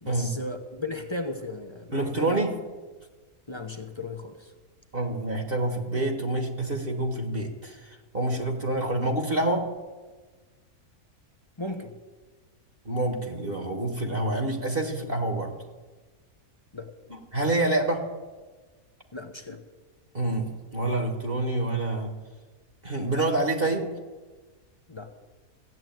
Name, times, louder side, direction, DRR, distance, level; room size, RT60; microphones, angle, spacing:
voice 1, 0.0-2.3 3.5-4.5 11.6-11.9 16.7-16.9 19.1-19.6 24.9-25.1, left 2 dB, 25° left, 6 dB, 0.8 m, -36 dB
voice 2, 1.9-2.5 4.9-9.7 12.8-15.5 17.1-18.1 20.1-22.1 22.8-23.9, right 2 dB, 40° right, 4 dB, 1.6 m, -27 dB
15.5 x 7.9 x 9.3 m, 1.3 s
omnidirectional pair, 1.6 m